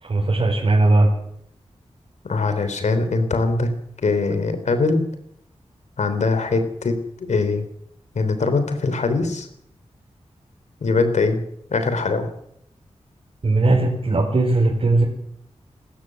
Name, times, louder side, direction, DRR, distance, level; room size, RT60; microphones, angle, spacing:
voice 1, 0.0-1.1 13.4-15.0, right 2 dB, 55° right, -2 dB, 5.2 m, -18 dB
voice 2, 2.3-3.7 4.0-5.1 6.0-7.6 8.2-9.5 10.8-11.4 11.7-12.3, left 3 dB, 80° left, 9 dB, 3.6 m, -22 dB
29.0 x 13.5 x 7.8 m, 0.71 s
wide cardioid pair, 120°, 12 cm